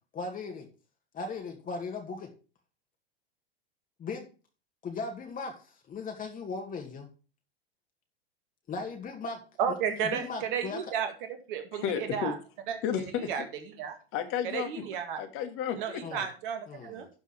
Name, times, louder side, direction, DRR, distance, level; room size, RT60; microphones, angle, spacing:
voice 1, 0.1-0.7 1.1-2.3 4.0-4.3 4.8-7.1 8.7-9.4 9.7-10.8 16.0-16.3 16.7-17.1, left 4 dB, 30° left, 3 dB, 2.1 m, -38 dB
voice 2, 9.6-11.1 11.5-12.3 12.7-12.8 13.3-13.4 13.8-13.9 14.5-15.2 15.7-17.1, right 7 dB, 60° right, 7 dB, 2.1 m, -32 dB
voice 3, 11.8-12.4 12.8-13.5 14.1-14.7 15.2-16.0, left 8 dB, 45° left, 7 dB, 1.9 m, -32 dB
12.0 x 4.7 x 6.0 m, 0.35 s
hypercardioid pair, 90°, 30 cm